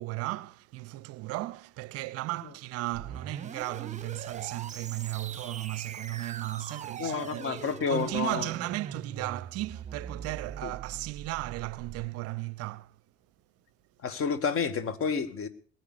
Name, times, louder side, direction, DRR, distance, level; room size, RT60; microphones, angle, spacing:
voice 1, 0.0-13.0, right 19 dB, 45° right, 0.6 m, -35 dB
sound 1, 2.9-12.1, right 7 dB, 20° right, 1.0 m, -42 dB
voice 2, 7.0-8.5 10.6-10.7 14.0-15.5, left 6 dB, 40° left, 1.9 m, -30 dB
21.0 x 9.4 x 6.7 m
figure-of-eight pair, 55°, 32 cm